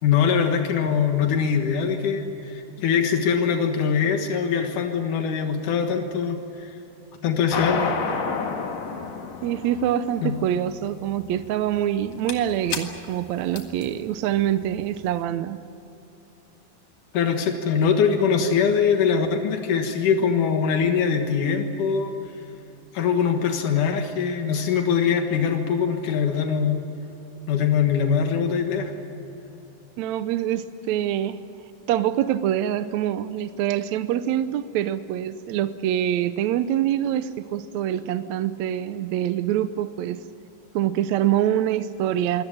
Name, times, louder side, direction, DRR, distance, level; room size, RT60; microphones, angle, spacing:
voice 1, 0.0-6.7 7.2-7.9 10.2-10.3 17.1-22.1 22.9-26.9 27.5-28.9, left 6 dB, 90° left, 4 dB, 3.1 m, -22 dB
sound 1, 7.5-15.0, left 5 dB, 60° left, 3.0 m, -31 dB
voice 2, 9.4-15.6 30.0-31.4 31.9-40.2 40.8-42.4, right 11 dB, 75° right, 12 dB, 1.9 m, -25 dB
24.0 x 18.0 x 8.7 m, 2.9 s
omnidirectional pair, 3.5 m